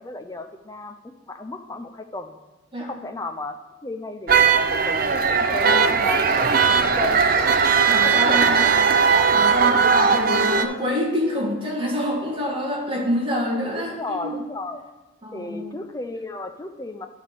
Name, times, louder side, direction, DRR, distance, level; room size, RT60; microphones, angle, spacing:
voice 1, 0.0-2.4 2.8-3.6 3.8-8.9 13.7-14.8 15.3-17.1, left 2 dB, 20° left, 7 dB, 0.5 m, -34 dB
sound 1, 4.3-10.6, right 5 dB, 45° right, 0.5 m, -18 dB
voice 2, 5.6-6.0 7.9-8.8 9.3-14.4 15.2-15.7, left 1 dB, 25° right, -2 dB, 1.6 m, -27 dB
10.5 x 3.5 x 6.5 m, 1.1 s
head